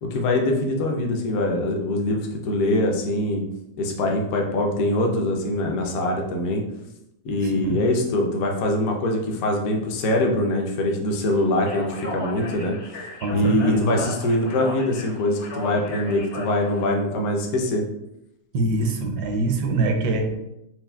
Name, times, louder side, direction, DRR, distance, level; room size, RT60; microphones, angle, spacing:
voice 1, 0.0-3.4 3.8-6.6 7.2-12.8 13.3-17.8, left 1 dB, 65° left, 1 dB, 1.0 m, -23 dB
voice 2, 7.4-7.8 13.2-14.0 18.5-20.3, right 2 dB, 75° right, 5 dB, 1.1 m, -24 dB
Speech, 11.5-16.9, left 1 dB, 45° left, 0.7 m, -36 dB
5.8 x 2.4 x 2.3 m, 0.85 s
omnidirectional pair, 1.9 m